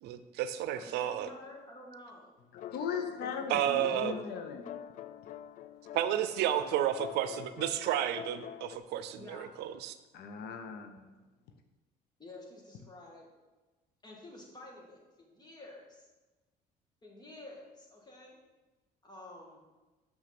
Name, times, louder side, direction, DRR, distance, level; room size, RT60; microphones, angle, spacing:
voice 1, 0.0-1.3 3.5-4.1 5.9-9.9, right 11 dB, 80° right, 12 dB, 0.6 m, -32 dB
voice 2, 0.8-2.3 3.8-4.2 6.4-6.8 9.2-9.5 12.2-13.3 14.0-16.1 17.0-18.4 19.0-19.7, left 2 dB, 25° left, -1 dB, 2.2 m, -50 dB
sound 1, 2.5-8.8, left 11 dB, 50° left, 0.4 m, -46 dB
voice 3, 2.7-4.8 10.1-11.1, left 6 dB, 75° left, 7 dB, 0.9 m, -38 dB
6.4 x 6.1 x 6.0 m, 1.2 s
cardioid pair, 110°, 17 cm